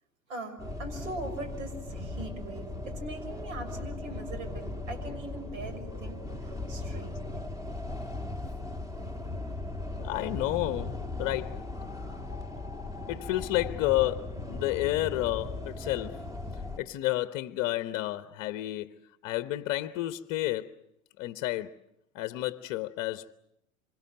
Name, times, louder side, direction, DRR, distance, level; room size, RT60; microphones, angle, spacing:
voice 1, 0.3-7.2, right 2 dB, 65° right, 6.5 m, -41 dB
sound 1, 0.6-16.8, left 2 dB, 10° right, 2.3 m, -38 dB
voice 2, 10.0-11.7 13.1-16.3 16.8-20.7 21.2-21.8 22.1-23.3, left 16 dB, 40° left, 1.0 m, -31 dB
26.5 x 26.0 x 7.8 m
figure-of-eight pair, 95°, 41 cm